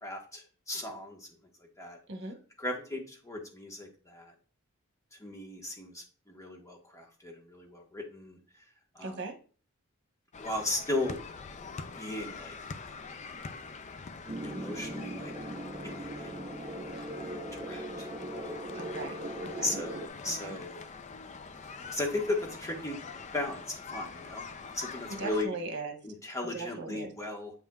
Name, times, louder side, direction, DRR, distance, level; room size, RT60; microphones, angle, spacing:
voice 1, 0.0-1.3 1.8-2.0 2.6-4.3 5.2-8.4 8.9-9.2 10.4-11.2 11.9-12.5 12.8-13.0 14.4-15.3 15.8-16.3 16.6-18.1 18.3-18.6 19.6-20.8 21.9-23.0 23.3-24.4 24.7-25.5 26.0-27.5, left 2 dB, 15° left, 0 dB, 1.3 m, -36 dB
voice 2, 9.0-9.3 18.7-19.8 20.3-20.6 25.1-26.0 26.5-27.1, right 3 dB, 50° right, 4 dB, 1.1 m, -39 dB
sound 1, 10.3-25.5, left 4 dB, 35° left, 0.4 m, -44 dB
sound 2, 14.3-20.1, right 1 dB, 20° right, 0.7 m, -39 dB
7.8 x 5.3 x 2.3 m, 0.40 s
head